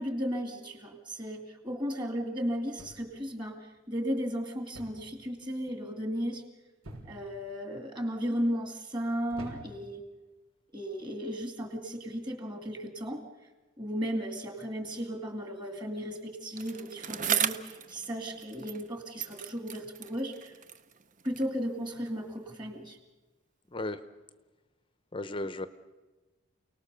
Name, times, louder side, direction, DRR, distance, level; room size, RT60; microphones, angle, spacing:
voice 1, 0.0-6.4 7.0-10.0 10.7-13.2 13.8-20.6 21.2-23.0, equal, 20° right, 4 dB, 2.4 m, -35 dB
sound 1, 2.8-3.3 4.7-5.1 5.4-5.8 6.8-7.4 8.1-8.5 9.3-10.0 10.9-11.2, right 1 dB, 85° right, 6.0 m, -47 dB
Bicycle, 16.6-18.9 19.2-21.6 22.3-22.4, right 8 dB, 35° right, 0.7 m, -36 dB
voice 2, 25.1-25.7, left 2 dB, 25° left, 12 dB, 0.8 m, -34 dB
29.0 x 19.0 x 6.9 m, 1.2 s
head